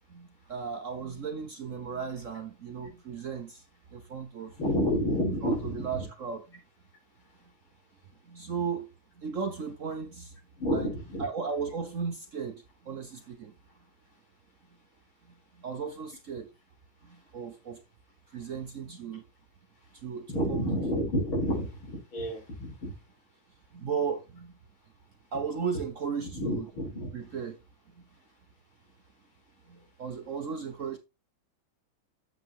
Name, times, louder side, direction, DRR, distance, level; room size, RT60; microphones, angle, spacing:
voice 1, 0.1-3.6 3.9-4.5 5.4-6.6 8.3-8.9 9.2-10.3 10.7-10.9 11.2-13.5 15.6-16.5 17.0-17.8 18.3-19.2 20.0-20.8 23.7-24.5 25.3-26.7 27.1-27.6 29.7-31.0, right 6 dB, 55° right, 0.9 m, -35 dB
voice 2, 4.6-6.0 10.6-11.3 20.3-22.9 26.3-27.1, equal, 85° left, 5.6 m, -29 dB
8.2 x 7.4 x 3.2 m
omnidirectional pair, 2.2 m